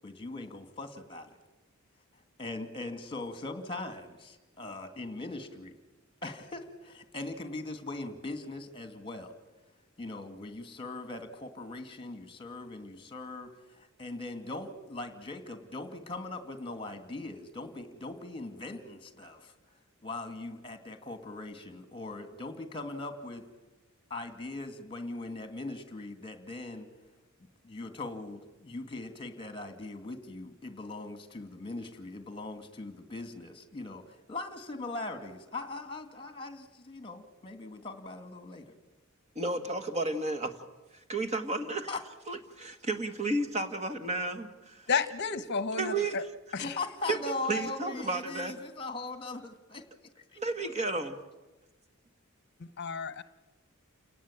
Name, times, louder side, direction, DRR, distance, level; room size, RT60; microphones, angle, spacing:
voice 1, 0.0-1.4 2.1-5.7 6.2-9.3 10.0-19.5 20.0-23.4 24.1-26.9 27.6-38.8 41.9-42.0 46.6-49.9 50.2-50.4, left 2 dB, 25° left, 9 dB, 2.4 m, -40 dB
voice 2, 39.4-40.5 41.1-41.9 42.3-44.9 45.8-46.3 47.1-48.6 50.4-51.2, right 2 dB, 30° right, 7 dB, 1.8 m, -32 dB
voice 3, 44.9-46.2 46.5-46.8 52.6-53.2, left 5 dB, 55° left, 13 dB, 0.9 m, -32 dB
29.5 x 18.5 x 8.9 m, 1.1 s
head